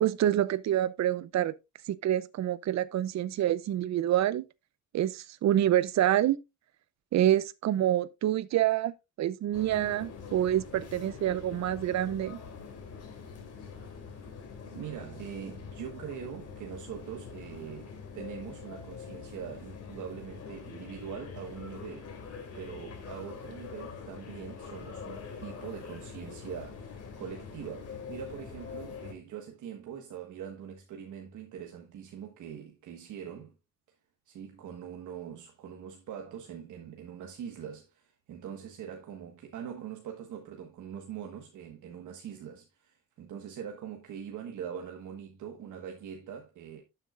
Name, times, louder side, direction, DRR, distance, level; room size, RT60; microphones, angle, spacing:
voice 1, 0.0-1.5 1.9-4.5 4.9-6.4 7.1-12.4, right 12 dB, 65° right, 0.7 m, -27 dB
sound 1, 9.5-29.1, left 5 dB, 55° left, 2.7 m, -44 dB
voice 2, 14.1-33.6 34.2-46.8, right 8 dB, 80° right, 1.3 m, -43 dB
11.5 x 7.3 x 2.4 m
cardioid pair, 140°, 30 cm